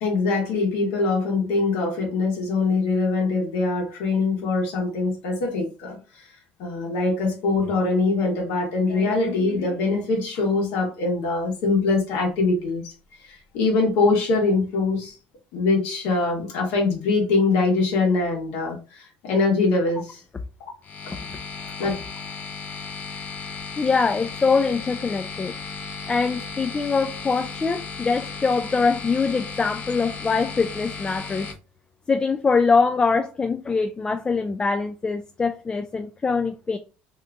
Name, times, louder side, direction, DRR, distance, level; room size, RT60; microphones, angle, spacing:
voice 1, 0.0-6.3 6.6-12.9 13.2-15.2 15.5-20.2 21.8-21.9, left 3 dB, 80° left, 1.2 m, -23 dB
sound 1, 20.8-31.5, left 5 dB, 40° left, 0.8 m, -35 dB
voice 2, 23.8-25.5 26.1-31.5 32.1-36.8, left 4 dB, 20° left, 0.3 m, -23 dB
2.8 x 2.4 x 3.4 m
supercardioid pair, 100°, 4 cm